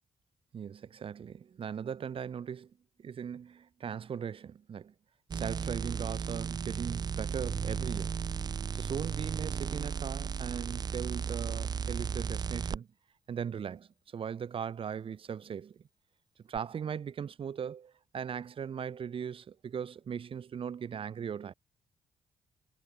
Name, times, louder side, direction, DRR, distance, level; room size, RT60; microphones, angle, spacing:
voice 1, 0.5-2.7 3.0-4.9 5.3-8.2 8.7-12.9 13.3-15.8 16.5-21.5, right 7 dB, 55° right, 2.6 m, -39 dB
sound 1, 5.3-12.8 16.5-16.6, right 6 dB, 40° right, 0.5 m, -35 dB
cardioid pair, 75°, 11 cm